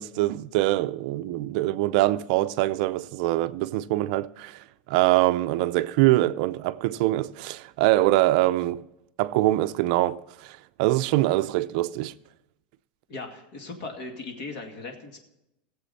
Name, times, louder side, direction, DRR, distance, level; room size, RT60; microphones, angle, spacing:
voice 1, 0.0-8.8 9.2-12.1, right 17 dB, 50° right, 0.5 m, -24 dB
voice 2, 13.1-15.2, left 3 dB, 50° left, 2.2 m, -38 dB
17.0 x 7.7 x 4.1 m
supercardioid pair, 170°, 5 cm